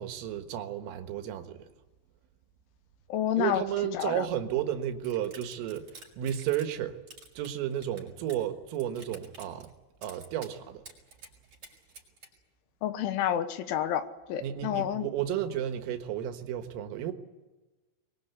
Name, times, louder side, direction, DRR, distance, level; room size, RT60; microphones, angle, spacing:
voice 1, 0.0-1.7 3.4-7.0 7.4-9.7 10.0-10.8 14.4-17.1, right 11 dB, 90° right, 4.1 m, -33 dB
voice 2, 3.1-3.6 3.9-4.2 12.8-14.0 14.3-15.1, left 10 dB, 80° left, 3.5 m, -29 dB
sound 1, 5.0-6.8 7.1-8.5 8.7-9.7 10.0-10.5 10.9-12.3, right 3 dB, 30° right, 6.1 m, -50 dB
23.5 x 22.5 x 8.2 m
omnidirectional pair, 5.7 m